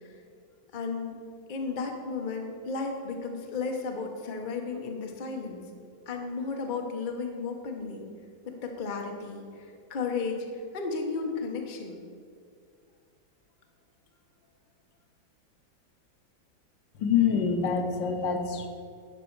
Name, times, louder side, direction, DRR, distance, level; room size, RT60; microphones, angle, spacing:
voice 1, 0.7-1.2 1.5-5.6 6.1-8.1 8.5-10.5 10.7-12.0, left 4 dB, 50° left, 2 dB, 0.5 m, -34 dB
voice 2, 17.0-18.7, left 6 dB, 70° left, 4 dB, 1.5 m, -26 dB
11.5 x 5.4 x 4.5 m, 2.2 s
omnidirectional pair, 2.2 m